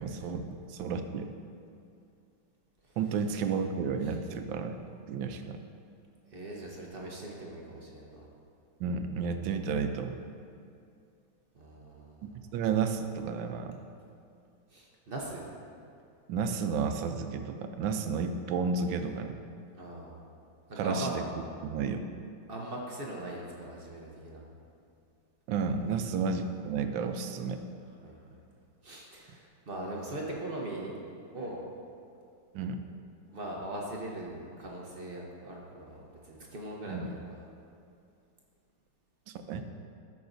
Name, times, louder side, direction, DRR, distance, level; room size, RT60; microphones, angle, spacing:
voice 1, 0.0-1.3 3.0-5.6 8.8-10.2 12.2-13.8 16.3-19.4 20.8-21.2 21.6-22.1 25.5-27.6 32.5-32.8 36.9-37.1 39.3-39.6, right 5 dB, 80° right, 7 dB, 1.3 m, -32 dB
voice 2, 6.3-8.3 11.5-12.4 14.7-15.5 19.7-20.2 20.7-21.2 22.5-24.5 25.9-26.0 28.0-28.2 28.8-31.0 31.3-31.6 33.3-37.4, right 1 dB, 45° right, -2 dB, 0.7 m, -40 dB
13.0 x 6.0 x 2.6 m, 2.5 s
omnidirectional pair, 2.0 m